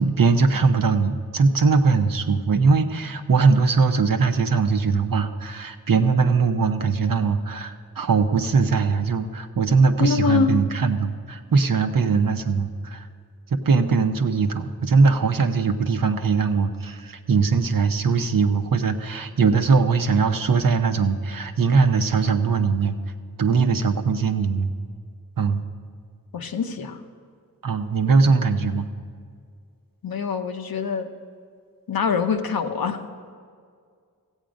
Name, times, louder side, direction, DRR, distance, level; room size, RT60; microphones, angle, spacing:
voice 1, 0.0-13.1 13.5-23.0 23.4-24.7 25.4-25.6 27.6-28.9, right 4 dB, 70° right, 7 dB, 0.8 m, -21 dB
voice 2, 10.0-10.6 26.3-27.0 30.0-31.1 31.9-33.0, left 6 dB, 85° left, 6 dB, 0.8 m, -24 dB
14.5 x 8.2 x 5.1 m, 2.1 s
cardioid pair, 40°, 35 cm